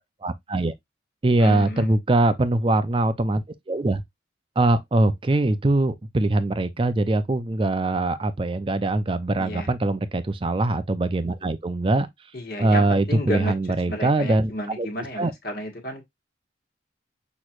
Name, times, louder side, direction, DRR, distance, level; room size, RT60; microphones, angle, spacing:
voice 1, 0.2-0.7 1.2-4.0 4.6-12.1 12.6-14.5 14.8-14.9 15.2-15.3, right 2 dB, 25° right, 0.4 m, -22 dB
voice 2, 1.4-1.9 9.4-9.7 12.3-13.5 13.9-16.0, left 1 dB, 50° left, 1.4 m, -32 dB
6.2 x 3.0 x 2.4 m
head